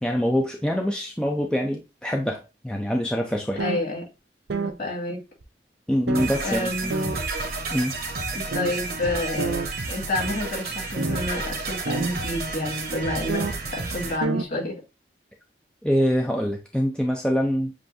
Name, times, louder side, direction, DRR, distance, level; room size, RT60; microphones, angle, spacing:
voice 1, 0.0-3.6 5.9-6.9 7.7-7.9 15.8-17.7, equal, 5° left, 0.4 m, -25 dB
voice 2, 3.6-4.1 4.6-5.2 6.4-7.2 8.3-9.6 9.9-13.4 13.7-14.8, left 1 dB, 55° left, 2.3 m, -29 dB
sound 1, 3.6-3.8 4.5-4.7 5.4-5.5 6.1-6.3 6.9-7.2 7.9-8.0 8.5-8.8 9.4-9.7 11.0-11.2 11.9-12.1 13.3-13.5 13.9-14.0 14.2-14.4, right 3 dB, 75° right, 0.6 m, -27 dB
sound 2, 6.1-14.2, right 3 dB, 55° right, 1.0 m, -31 dB
7.5 x 2.6 x 2.6 m
head